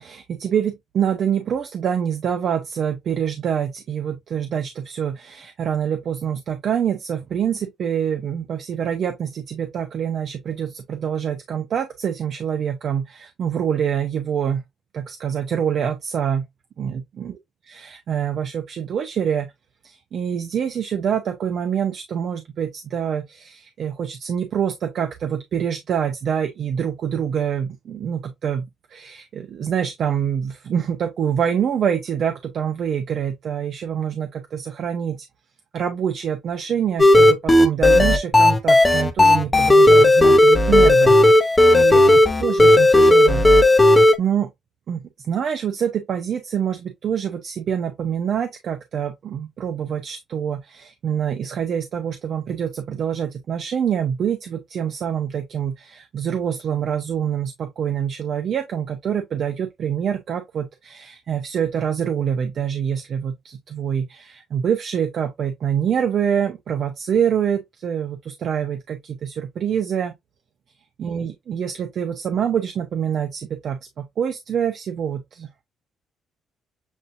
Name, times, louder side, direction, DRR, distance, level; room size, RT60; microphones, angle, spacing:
voice 1, 0.0-14.6 14.9-16.5 16.8-17.4 17.7-19.5 19.8-35.3 35.7-43.4 44.2-44.5 44.9-70.1 71.0-75.6, right 8 dB, 60° right, 0.6 m, -26 dB
sound 1, 37.0-44.2, left 1 dB, 20° left, 0.8 m, -13 dB
7.3 x 2.6 x 2.6 m
cardioid pair, 90°, 0 cm